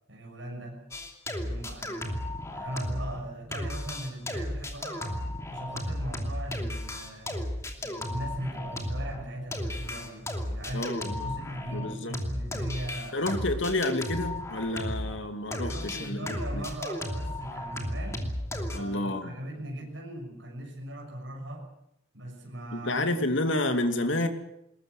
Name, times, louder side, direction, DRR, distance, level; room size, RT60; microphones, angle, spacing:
voice 1, 0.1-0.9 1.4-2.2 2.5-5.2 5.5-7.4 7.8-10.9 11.2-13.2 15.7-18.3 18.7-21.7 22.1-23.0, right 1 dB, 65° right, 0 dB, 6.5 m, -39 dB
sound 1, 0.9-3.2 3.5-15.2 15.5-18.8, left 1 dB, 15° left, 2.7 m, -34 dB
voice 2, 10.7-11.4 11.7-12.2 13.1-16.6 18.7-19.3 22.7-24.3, left 1 dB, 65° left, 7 dB, 2.6 m, -30 dB
20.5 x 20.5 x 8.2 m, 0.81 s
head